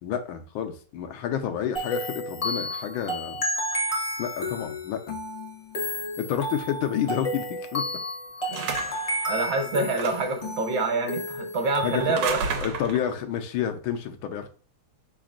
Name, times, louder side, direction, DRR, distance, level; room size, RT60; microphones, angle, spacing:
voice 1, 0.0-3.4 4.2-5.2 6.2-7.8 8.5-8.6 11.8-12.0 12.6-14.5, left 9 dB, 85° left, 6 dB, 1.5 m, -29 dB
sound 1, 1.7-12.4, left 1 dB, 35° left, 0.5 m, -32 dB
sound 2, 8.5-9.1 9.9-10.4 12.0-13.1, right 5 dB, 90° right, 1.6 m, -31 dB
voice 2, 9.3-12.4, right 3 dB, 70° right, 4 dB, 1.6 m, -26 dB
5.0 x 3.9 x 2.4 m, 0.39 s
omnidirectional pair, 2.2 m